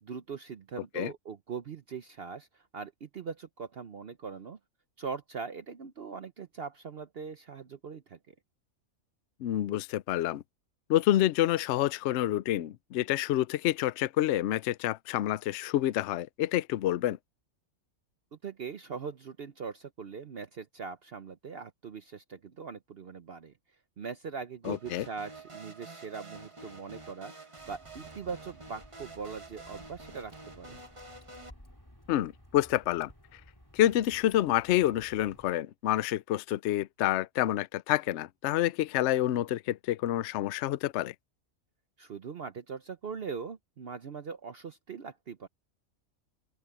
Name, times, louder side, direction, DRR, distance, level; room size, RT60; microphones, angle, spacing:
voice 1, 0.0-4.6 5.0-8.3 18.3-23.5 24.0-30.8 42.0-45.5, right 5 dB, 50° right, 0.9 m, -41 dB
voice 2, 9.4-10.4 10.9-17.2 24.7-25.0 32.1-33.1 33.7-41.1, left 13 dB, 65° left, 0.8 m, -28 dB
sound 1, 24.6-31.5, right 3 dB, 25° right, 1.3 m, -48 dB
Water / Drip, 27.6-35.5, equal, 15° left, 4.6 m, -56 dB
open air
omnidirectional pair, 1.5 m